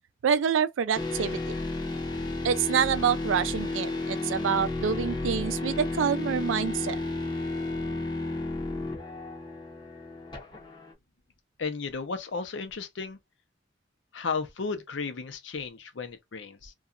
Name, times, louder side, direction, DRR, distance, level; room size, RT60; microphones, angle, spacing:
voice 1, 0.2-1.6 2.4-7.0, right 7 dB, 85° right, 0.4 m, -27 dB
sound 1, 1.0-10.9, left 2 dB, 25° left, 0.5 m, -32 dB
voice 2, 11.6-13.2 14.1-16.7, left 4 dB, 80° left, 0.6 m, -34 dB
2.8 x 2.3 x 2.4 m
head